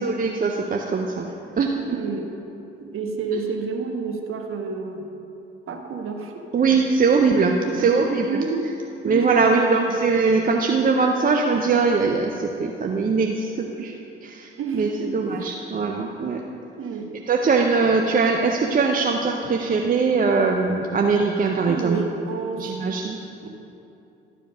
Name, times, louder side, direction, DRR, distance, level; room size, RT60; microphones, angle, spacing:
voice 1, 0.0-2.0 6.5-8.3 9.0-13.9 14.2-16.4 17.3-22.0 22.6-23.2, right 4 dB, 30° right, 2 dB, 0.7 m, -21 dB
voice 2, 1.8-2.3 2.8-5.1 5.7-6.5 7.6-8.7 9.0-10.0 13.6-13.7 14.6-15.4 16.8-17.1 21.6-22.7 23.4-23.5, right 4 dB, 45° right, 3 dB, 1.3 m, -30 dB
12.0 x 5.0 x 6.1 m, 2.8 s
figure-of-eight pair, 50°, 30 cm